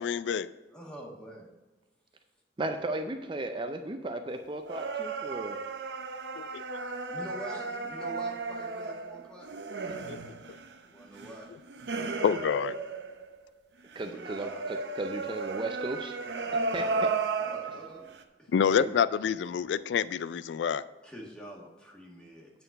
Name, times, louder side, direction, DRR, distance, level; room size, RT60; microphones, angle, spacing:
voice 1, 0.0-0.5 6.4-6.6 10.1-10.2 11.9-12.8 18.5-20.8, left 7 dB, 90° left, 16 dB, 0.3 m, -28 dB
voice 2, 0.7-1.5 7.1-9.5 9.8-10.0 10.8-11.5 13.9-14.6 16.4-17.1 17.4-18.1 18.4-18.5 21.0-22.5, equal, 5° left, -2 dB, 1.7 m, -45 dB
voice 3, 2.6-5.6 14.0-16.2 16.7-17.1 18.8-18.9, right 2 dB, 30° right, 6 dB, 0.5 m, -35 dB
sound 1, 4.6-13.4 13.9-18.2, right 4 dB, 75° right, 0.7 m, -35 dB
9.0 x 4.4 x 6.5 m, 1.1 s
head